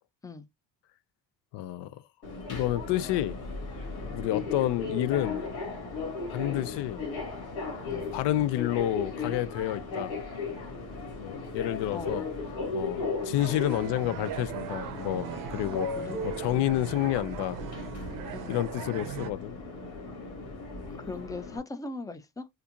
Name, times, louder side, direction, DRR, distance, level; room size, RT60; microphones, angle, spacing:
voice 1, 1.5-2.0 2.5-3.4 4.1-5.4 6.3-7.0 7.8-10.1 11.2-12.2 12.7-15.9 16.2-17.6 18.5-19.5, left 13 dB, 85° left, 0.5 m, -29 dB
Subway metro underground, 2.2-21.6, left 3 dB, 70° left, 2.0 m, -36 dB
voice 2, 11.9-12.2 15.7-16.2 18.3-18.6 20.9-22.5, left 3 dB, 10° left, 0.4 m, -40 dB
sound 1, 13.4-19.3, right 11 dB, 55° right, 0.6 m, -40 dB
4.3 x 2.6 x 2.5 m
cardioid pair, 140°, 40 cm